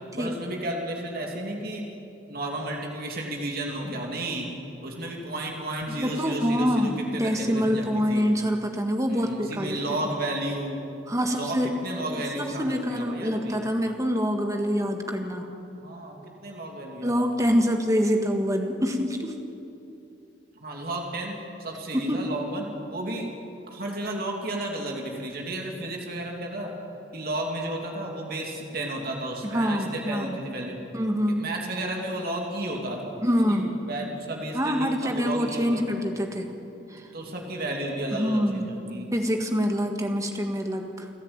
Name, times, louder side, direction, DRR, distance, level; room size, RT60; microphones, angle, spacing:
voice 1, 0.1-1.8 2.3-4.5 4.8-8.2 9.1-10.8 11.2-13.6 15.8-17.6 20.6-23.3 23.7-26.7 27.1-30.8 31.4-35.9 37.1-39.1, right 1 dB, 50° right, 0 dB, 2.7 m, -33 dB
voice 2, 5.9-9.8 11.1-11.7 12.1-15.5 17.0-19.4 21.9-22.3 29.4-30.4 30.9-31.5 33.2-33.7 34.5-36.5 36.9-37.1 38.1-38.7 39.1-41.1, equal, 15° right, 4 dB, 1.6 m, -26 dB
29.5 x 10.5 x 8.9 m, 2.8 s
head